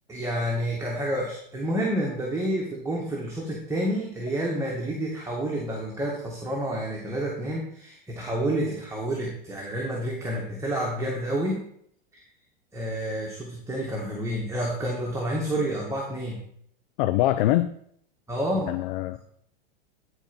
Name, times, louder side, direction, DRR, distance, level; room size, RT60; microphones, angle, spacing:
voice 1, 0.1-11.6 12.1-12.2 12.7-16.4 18.3-18.7, right 1 dB, 10° right, -3 dB, 2.0 m, -29 dB
voice 2, 17.0-17.7 18.6-19.2, left 14 dB, 60° left, 12 dB, 0.6 m, -23 dB
10.5 x 4.6 x 5.4 m, 0.68 s
hypercardioid pair, 100°, 30 cm